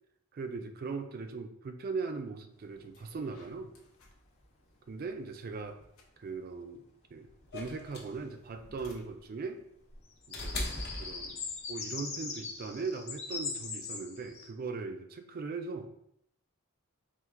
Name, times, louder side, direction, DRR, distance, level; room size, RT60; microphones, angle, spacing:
voice 1, 0.3-3.7 4.9-5.8 6.2-6.8 7.1-7.3 7.5-9.6 10.3-10.6 11.0-11.4 11.7-15.9, right 4 dB, 45° right, 7 dB, 0.3 m, -39 dB
sound 1, 2.2-2.4 2.7-11.0, left 1 dB, 80° left, 0.8 m, -61 dB
sound 2, 2.8-3.8 4.1-4.2 9.9-14.5, left 4 dB, 30° left, 0.5 m, -41 dB
sound 3, 7.5-11.8 13.0-13.1, left 1 dB, 50° left, 0.8 m, -40 dB
4.4 x 2.4 x 3.5 m, 0.75 s
head